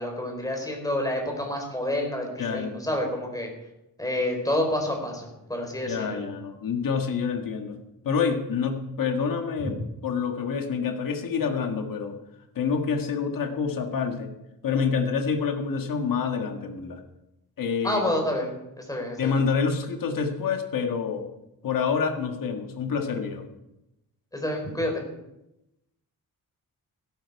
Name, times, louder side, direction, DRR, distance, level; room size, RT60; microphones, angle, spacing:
voice 1, 0.0-3.5 4.0-6.2 17.8-19.3 24.3-25.0, left 1 dB, 10° left, 2 dB, 4.0 m, -28 dB
voice 2, 2.4-2.8 5.9-7.8 8.0-9.8 10.0-12.2 12.6-14.3 14.6-17.0 17.6-18.0 19.2-21.3 21.6-23.5, left 6 dB, 65° left, 4 dB, 1.7 m, -27 dB
16.0 x 12.5 x 4.7 m, 0.89 s
wide cardioid pair, 140°, 36 cm